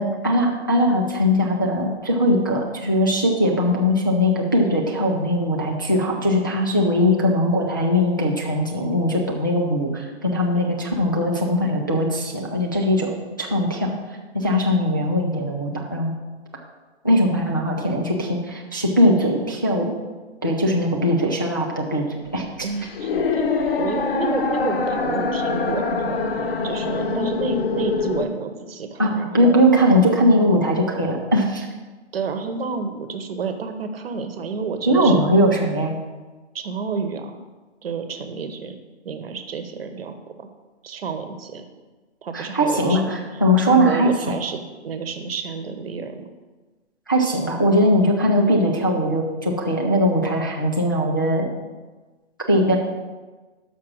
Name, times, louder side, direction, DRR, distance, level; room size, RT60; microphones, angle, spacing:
voice 1, 0.0-14.0 14.3-16.1 17.0-19.9 20.4-22.4 29.0-31.7 34.9-36.0 42.3-44.1 47.1-51.5 52.5-52.8, equal, 20° left, -1 dB, 0.3 m, -20 dB
sound 1, 22.2-28.2, left 4 dB, 55° left, 0.9 m, -24 dB
voice 2, 22.6-23.5 23.7-26.2 26.6-29.7 32.1-35.3 36.5-37.4 37.8-40.5 40.8-41.7 42.2-43.2 43.6-46.3, right 5 dB, 55° right, 8 dB, 1.0 m, -30 dB
5.9 x 5.9 x 6.2 m, 1.3 s
hypercardioid pair, 160°, 35 cm